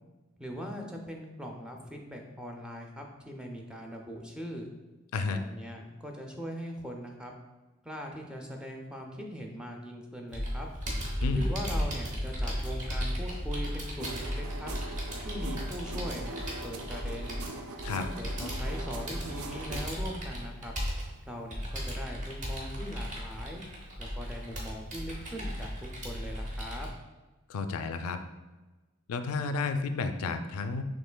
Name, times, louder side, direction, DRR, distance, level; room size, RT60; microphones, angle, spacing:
voice 1, 0.4-4.7 5.2-7.3 7.8-10.7 11.3-14.7 15.2-17.4 17.9-20.7 21.3-23.6 24.0-26.9, equal, 5° right, 1 dB, 0.4 m, -41 dB
Computer keyboard, 10.3-26.9, equal, 35° right, 0.8 m, -35 dB
sound 1, 14.0-19.8, right 2 dB, 85° right, 0.5 m, -42 dB
voice 2, 27.5-28.2 29.1-30.8, left 4 dB, 90° left, 8 dB, 0.3 m, -31 dB
5.6 x 3.1 x 2.2 m, 1.2 s
head